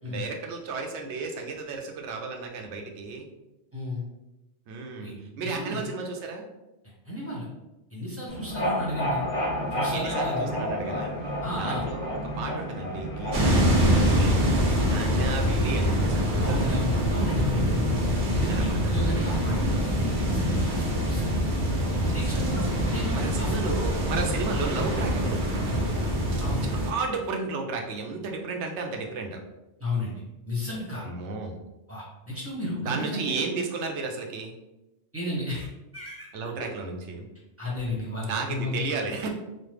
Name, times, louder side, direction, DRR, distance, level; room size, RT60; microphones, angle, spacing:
voice 1, 0.0-3.3 4.7-6.4 9.9-11.1 11.6-14.4 14.8-16.8 18.3-19.0 22.1-22.6 23.1-26.1 26.6-29.4 31.0-31.6 32.8-34.5 36.3-37.3 38.3-39.3, right 4 dB, 80° right, 2 dB, 0.9 m, -33 dB
voice 2, 3.7-4.0 5.0-5.1 5.4-5.8 7.0-7.5 7.9-9.2 9.7-10.5 11.4-11.9 16.4-18.0 18.4-21.4 22.1-23.6 26.4-26.7 29.8-31.0 31.9-33.4 35.1-35.7 35.9-36.3 36.6-36.7 37.6-39.0, left 1 dB, 15° right, -6 dB, 0.8 m, -33 dB
sound 1, 8.3-14.4, equal, 45° left, 0.8 m, -30 dB
sound 2, 13.3-26.9, equal, 50° right, 0.7 m, -25 dB
3.0 x 2.0 x 3.3 m, 0.99 s
omnidirectional pair, 1.2 m